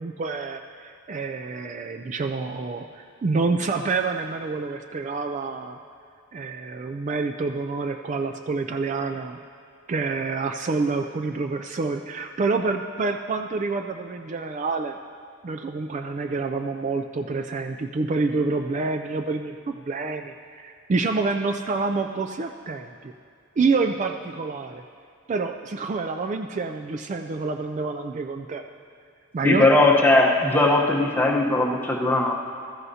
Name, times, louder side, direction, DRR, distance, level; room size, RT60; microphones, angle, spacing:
voice 1, 0.0-5.8 6.3-9.4 9.9-15.0 15.4-23.1 23.6-24.8 25.3-28.6 29.3-29.7, right 3 dB, 35° right, 6 dB, 0.3 m, -27 dB
voice 2, 29.4-32.3, left 2 dB, 10° left, -1 dB, 0.9 m, -19 dB
15.5 x 13.5 x 2.8 m, 2.3 s
head